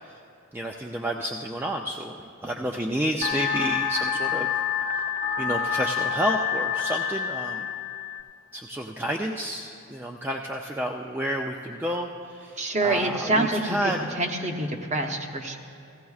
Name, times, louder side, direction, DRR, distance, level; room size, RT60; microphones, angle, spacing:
voice 1, 0.5-4.5 5.4-7.7 8.5-14.0, equal, 10° right, 0 dB, 0.3 m, -30 dB
sound 1, 3.2-8.2, left 7 dB, 35° left, 0.7 m, -27 dB
voice 2, 12.6-15.6, right 2 dB, 30° right, 3 dB, 0.8 m, -26 dB
17.0 x 16.0 x 2.4 m, 2.5 s
head